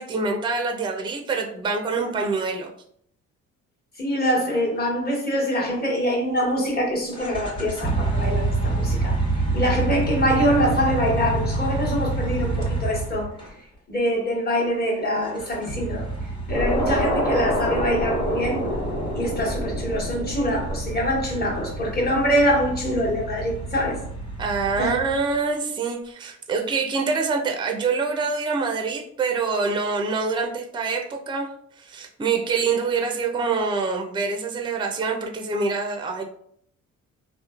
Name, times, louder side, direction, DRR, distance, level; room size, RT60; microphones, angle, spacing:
voice 1, 0.0-2.7 24.4-31.5 31.8-36.2, right 4 dB, 15° right, 3 dB, 0.4 m, -25 dB
voice 2, 4.0-9.2 9.5-13.3 13.9-16.1 16.5-18.6 19.1-24.0 24.8-24.9, equal, 30° left, -3 dB, 1.1 m, -24 dB
sound 1, 7.1-13.5 15.3-25.4, right 2 dB, 15° left, 0.9 m, -28 dB
sound 2, 16.5-21.8, left 1 dB, 85° left, 0.9 m, -27 dB
2.9 x 2.1 x 2.4 m, 0.65 s
cardioid pair, 90°, 30 cm